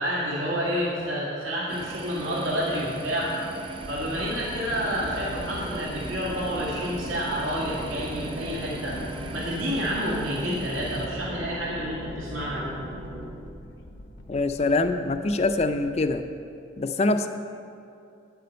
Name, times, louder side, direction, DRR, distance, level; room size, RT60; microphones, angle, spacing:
voice 1, 0.0-3.3 3.9-9.0 9.3-12.7, equal, 85° right, -6 dB, 2.0 m, -29 dB
sound 1, 1.7-11.1, right 3 dB, 25° right, 0.5 m, -40 dB
sound 2, 3.8-16.2, left 1 dB, 80° left, 0.9 m, -44 dB
sound 3, 4.7-13.3, equal, 55° right, 2.2 m, -38 dB
voice 2, 14.3-16.2 16.8-17.3, left 2 dB, 35° left, 9 dB, 0.4 m, -24 dB
9.5 x 6.8 x 6.4 m, 2.5 s
head